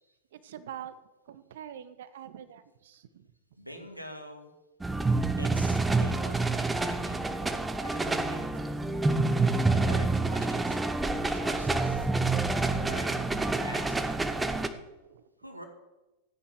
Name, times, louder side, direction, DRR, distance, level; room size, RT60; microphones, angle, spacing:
voice 1, 0.3-0.9 1.3-3.2 14.7-15.2, right 10 dB, 60° right, 13 dB, 1.1 m, -46 dB
voice 2, 3.6-4.5 5.4-8.7 9.7-10.8 11.3-12.1 12.6-13.2 13.5-14.1 15.4-15.6, equal, 90° right, 5 dB, 2.1 m, -45 dB
sound 1, 4.8-14.7, right 3 dB, 10° right, 1.0 m, -27 dB
14.5 x 9.9 x 6.5 m, 1.1 s
figure-of-eight pair, 90°, 0 cm